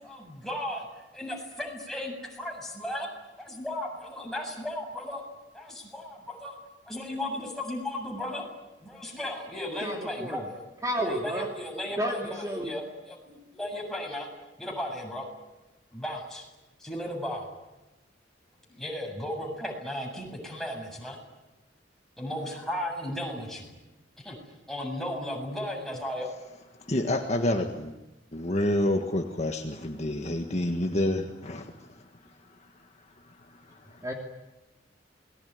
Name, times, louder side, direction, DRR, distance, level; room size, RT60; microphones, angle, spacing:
voice 1, 0.0-3.1 3.4-5.2 5.5-6.5 6.9-8.4 8.8-10.7 11.0-14.3 14.6-15.3 15.9-16.4 16.8-17.5 18.7-21.2 22.2-23.7 24.2-24.4 24.7-26.3, left 1 dB, ahead, 0 dB, 7.5 m, -35 dB
voice 2, 9.8-10.4 10.8-11.5 12.0-12.7 34.0-34.1, equal, 20° right, 1 dB, 2.8 m, -31 dB
voice 3, 26.8-28.0 28.3-32.0 33.3-34.0, left 1 dB, 35° left, 4 dB, 1.7 m, -29 dB
28.0 x 21.0 x 9.6 m, 1.0 s
head